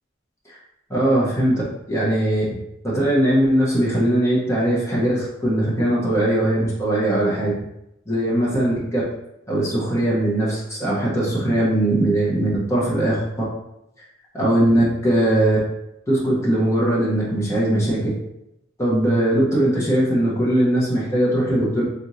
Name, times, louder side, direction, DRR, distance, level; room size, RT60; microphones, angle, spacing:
voice 1, 0.9-1.6 1.9-2.4 2.8-7.5 8.1-9.0 9.5-13.2 14.3-15.6 16.1-18.1 18.8-21.8, right 1 dB, 15° left, -6 dB, 1.0 m, -20 dB
3.4 x 3.1 x 2.7 m, 0.84 s
head